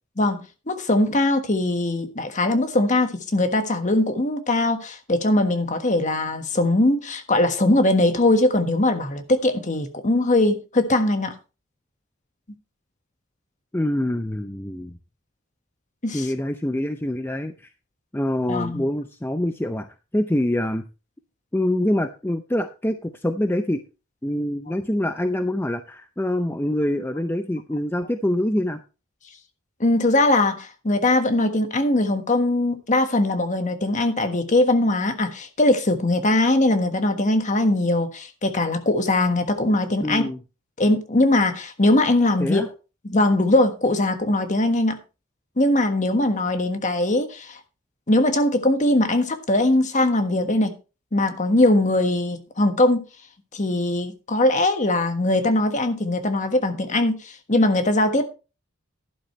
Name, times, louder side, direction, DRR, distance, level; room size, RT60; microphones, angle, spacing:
voice 1, 0.2-11.3 16.0-16.3 18.5-18.9 29.8-40.2 40.8-42.6 43.0-45.0 45.6-47.6 48.1-50.8 51.1-53.0 53.5-58.2, left 2 dB, 35° left, 1.4 m, -21 dB
voice 2, 13.7-15.0 16.1-17.7 18.1-19.9 20.1-20.9 21.5-23.8 24.2-28.8 40.0-40.4 42.4-42.7, left 1 dB, 10° left, 0.5 m, -25 dB
11.5 x 11.0 x 3.1 m
head